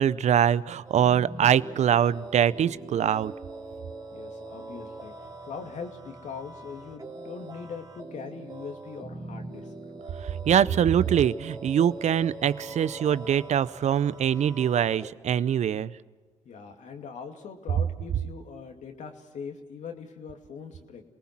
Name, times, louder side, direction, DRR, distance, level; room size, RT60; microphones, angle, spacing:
voice 1, 0.0-3.3 10.2-15.9, right 9 dB, 60° right, 18 dB, 0.7 m, -23 dB
sound 1, 0.8-15.1, right 2 dB, 30° right, 3.1 m, -42 dB
voice 2, 4.1-9.7 12.7-12.9 16.4-21.0, left 5 dB, 65° left, 4 dB, 2.6 m, -41 dB
27.5 x 19.5 x 6.1 m, 1.3 s
supercardioid pair, 50°, 13 cm